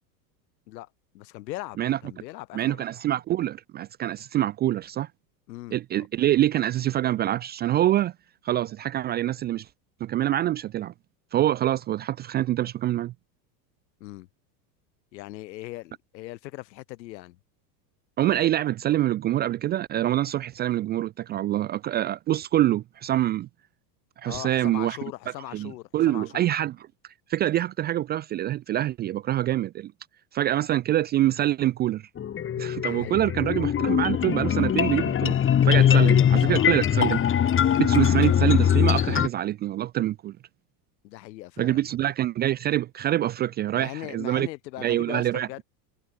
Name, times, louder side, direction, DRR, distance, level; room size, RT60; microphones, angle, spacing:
voice 1, 1.1-2.8 5.5-5.8 14.0-14.3 15.1-17.4 24.2-26.5 32.8-33.2 35.6-36.9 38.0-38.1 41.0-41.9 43.7-45.6, left 17 dB, 80° left, 5.8 m, -39 dB
voice 2, 2.5-5.1 5.7-8.1 8.4-9.7 10.0-10.9 11.3-13.1 18.2-23.5 24.2-25.0 25.5-26.8 27.3-29.9 30.3-32.1 32.6-35.4 35.6-37.2 37.8-40.4 41.6-44.5 44.8-45.6, right 13 dB, 20° right, 0.4 m, -25 dB
sound 1, 32.2-39.3, left 9 dB, 25° left, 2.1 m, -21 dB
supercardioid pair, 135°, 50 cm